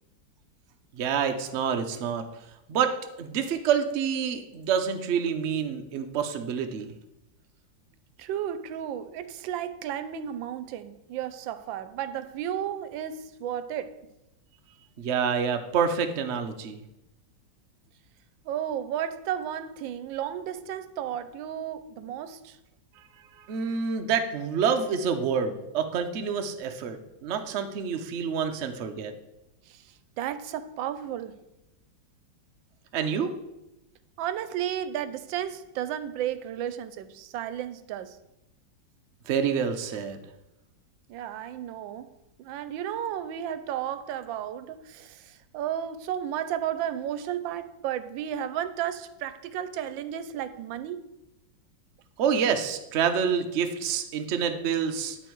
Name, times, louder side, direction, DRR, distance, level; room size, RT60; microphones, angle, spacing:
voice 1, 0.9-2.2 2.7-2.9 3.2-6.9 15.0-16.8 23.4-29.1 32.9-33.3 39.3-40.2 52.2-55.2, right 7 dB, 60° right, 0.7 m, -27 dB
voice 2, 8.2-14.0 18.4-22.6 29.7-31.3 34.2-38.2 41.1-51.0, right 10 dB, 90° right, 1.3 m, -33 dB
10.5 x 4.4 x 4.5 m
omnidirectional pair, 2.0 m